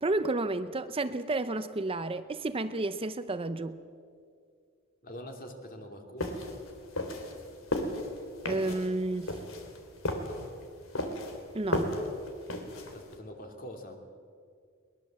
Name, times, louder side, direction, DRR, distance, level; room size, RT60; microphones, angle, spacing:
voice 1, 0.0-3.8 8.4-9.3 11.5-11.9, right 2 dB, 25° right, 11 dB, 0.6 m, -31 dB
voice 2, 5.0-6.4 12.9-14.0, equal, 45° left, 4 dB, 2.9 m, -44 dB
sound 1, 6.2-13.1, left 1 dB, 80° left, 3.2 m, -35 dB
22.5 x 21.0 x 7.6 m, 2.2 s
head